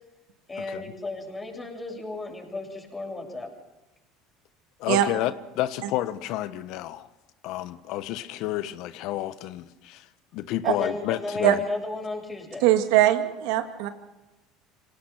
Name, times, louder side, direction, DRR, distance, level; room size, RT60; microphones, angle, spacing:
voice 1, 0.5-3.5 10.6-12.7, left 2 dB, 20° left, 7.7 m, -34 dB
voice 2, 4.8-7.1 7.4-10.0 10.3-11.7, left 14 dB, 65° left, 1.2 m, -30 dB
voice 3, 12.6-13.9, right 14 dB, 75° right, 2.2 m, -21 dB
26.5 x 18.0 x 6.0 m
supercardioid pair, 85°, 0 cm